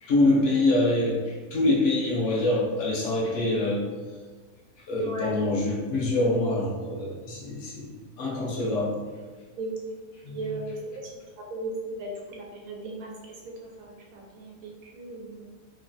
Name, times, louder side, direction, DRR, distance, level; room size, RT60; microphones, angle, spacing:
voice 1, 0.0-3.9 4.9-9.0 10.2-10.5, left 2 dB, 65° left, -3 dB, 0.8 m, -25 dB
voice 2, 4.9-5.3 9.6-9.8 10.3-10.7 11.5-13.1 13.6-15.5, right 2 dB, 80° right, -1 dB, 1.1 m, -36 dB
2.9 x 2.3 x 2.5 m, 1.4 s
omnidirectional pair, 1.5 m